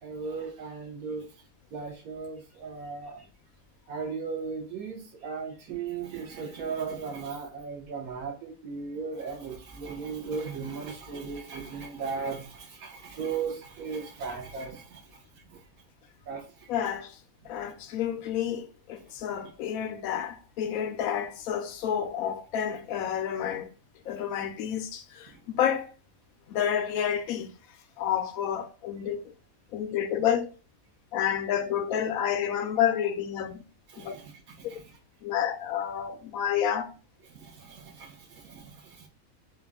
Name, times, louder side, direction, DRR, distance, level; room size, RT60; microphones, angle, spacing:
voice 1, 0.0-1.3 1.7-3.3 3.9-15.6 16.3-16.7 19.4-19.5 25.3-25.4 33.9-34.9 37.3-39.1, right 5 dB, 90° right, 1.3 m, -37 dB
voice 2, 16.7-17.2 17.4-23.7 24.1-25.9 26.5-27.5 28.0-29.3 29.7-30.5 31.1-33.6 34.0-34.1 35.2-36.9, left 9 dB, 80° left, 1.0 m, -29 dB
4.3 x 2.3 x 3.4 m
omnidirectional pair, 1.5 m